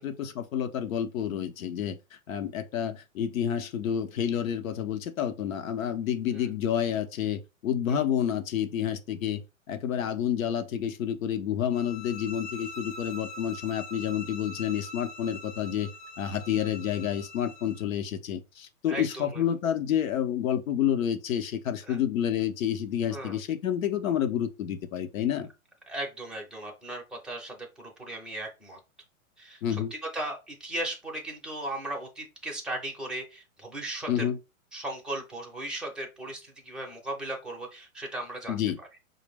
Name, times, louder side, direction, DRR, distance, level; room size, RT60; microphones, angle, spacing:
voice 1, 0.0-9.4 9.7-15.9 16.2-25.5 29.6-29.9 34.1-34.4 38.5-38.8, left 9 dB, 70° left, 0.8 m, -29 dB
sound 1, 11.7-17.9, left 2 dB, 55° left, 1.1 m, -43 dB
voice 2, 18.9-19.4 21.9-22.0 23.1-23.4 25.9-28.8 29.4-34.2 34.7-38.9, right 1 dB, ahead, 0.6 m, -37 dB
5.0 x 2.1 x 3.4 m
hypercardioid pair, 120°, 42 cm